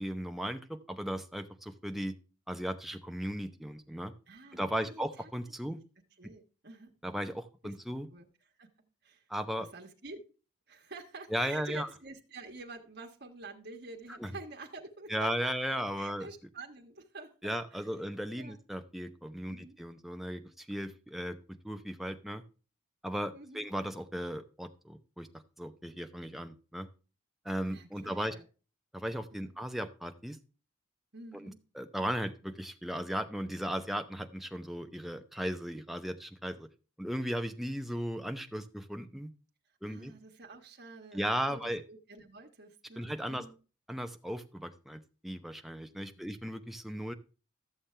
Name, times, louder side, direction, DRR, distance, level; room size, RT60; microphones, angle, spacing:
voice 1, 0.0-2.2 2.5-4.1 4.5-5.8 7.0-8.1 9.3-9.7 11.3-11.9 14.2-14.3 15.1-16.3 17.4-22.4 23.0-25.3 25.6-26.9 27.4-28.3 28.9-30.4 31.3-36.7 37.0-39.3 39.8-40.1 41.1-41.8 43.0-43.4 43.9-47.1, equal, ahead, 6 dB, 0.7 m, -36 dB
voice 2, 4.3-5.3 5.6-5.7 6.2-6.9 7.6-7.7 8.1-8.7 9.0-9.3 9.6-10.2 10.7-15.5 16.0-17.9 18.3-18.6 19.5-19.8 23.3-23.7 27.6-28.4 29.3-29.5 31.1-31.6 39.8-43.5 46.2-46.4, right 3 dB, 50° right, 1 dB, 1.4 m, -48 dB
13.0 x 7.2 x 3.3 m, 0.35 s
head